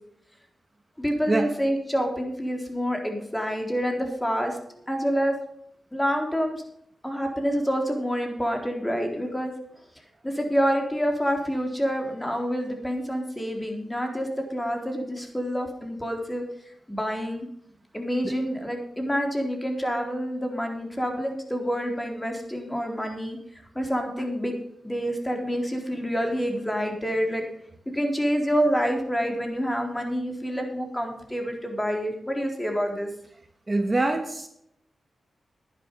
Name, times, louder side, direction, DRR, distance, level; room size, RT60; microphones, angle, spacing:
voice 1, 1.0-4.6 4.9-5.4 5.9-6.6 7.0-9.5 10.2-16.4 16.9-17.5 17.9-23.4 23.8-24.6 24.8-27.5 27.9-33.1, equal, 15° left, 3 dB, 4.0 m, -27 dB
voice 2, 33.7-34.5, right 2 dB, 35° right, 5 dB, 2.0 m, -24 dB
10.5 x 10.5 x 5.5 m, 0.73 s
supercardioid pair, 45°, 0 cm